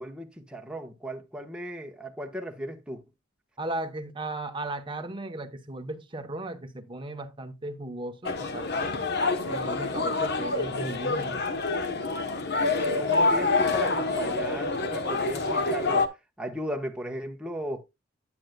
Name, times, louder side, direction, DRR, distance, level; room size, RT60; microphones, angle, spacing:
voice 1, 0.0-3.0 13.0-16.1 16.4-17.8, equal, 5° right, 1.0 m, -36 dB
voice 2, 3.6-8.9 9.4-11.4, right 2 dB, 25° right, 0.9 m, -36 dB
sound 1, 8.3-16.1, left 3 dB, 55° left, 1.0 m, -27 dB
9.3 x 9.0 x 2.2 m
head